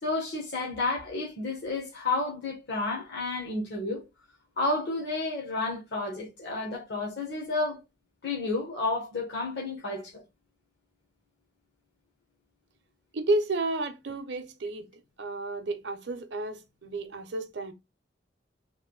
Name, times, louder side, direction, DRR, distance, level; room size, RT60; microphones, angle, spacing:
voice 1, 0.0-4.0 4.6-7.8 8.2-10.2, left 3 dB, 65° left, 1.1 m, -31 dB
voice 2, 13.1-14.9 15.2-17.7, right 2 dB, 65° right, 0.6 m, -31 dB
3.5 x 2.5 x 3.8 m
head